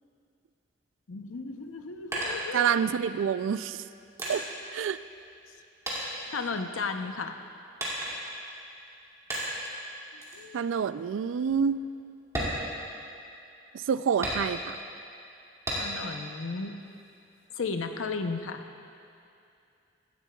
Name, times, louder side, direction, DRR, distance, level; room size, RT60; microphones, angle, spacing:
voice 1, 1.1-2.7 4.2-4.4 6.3-7.4 10.1-10.6 15.8-16.8 17.5-18.6, left 4 dB, 85° left, 7 dB, 0.7 m, -34 dB
sound 1, 1.6-3.1 3.7-5.6 5.9-7.0 7.8-8.4 9.3-9.8 10.2-10.5 10.9-11.0 11.4-11.6 12.2-13.4 14.2-14.9 15.7-16.2 16.6-17.4, right 1 dB, 15° right, 2.3 m, -34 dB
voice 2, 2.5-3.8 4.3-4.4 4.7-5.0 10.5-11.8 13.7-14.8, right 7 dB, 75° right, 14 dB, 0.3 m, -27 dB
17.0 x 12.5 x 2.3 m, 2.6 s
head